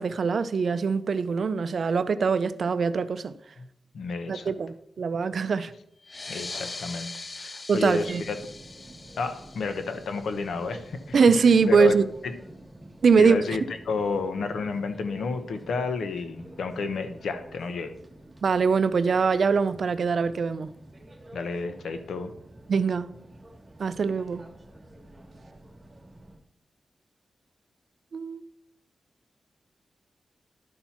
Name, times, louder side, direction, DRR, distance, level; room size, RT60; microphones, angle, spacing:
voice 1, 0.0-3.3 4.3-5.7 6.3-6.4 7.7-8.2 11.1-12.0 13.0-13.4 18.4-20.7 22.7-23.1 23.8-24.4 28.1-28.4, right 5 dB, 65° right, 0.5 m, -23 dB
voice 2, 3.9-4.5 6.3-7.1 7.3-8.4 9.2-11.2 11.7-11.9 12.2-12.3 13.2-13.6 13.9-18.0 21.3-22.3, left 4 dB, 90° left, 1.0 m, -31 dB
sound 1, 6.0-11.1, left 3 dB, 40° left, 0.5 m, -41 dB
sound 2, 7.8-26.4, right 1 dB, 25° right, 1.3 m, -49 dB
11.5 x 4.4 x 5.7 m
cardioid pair, 80°, 0 cm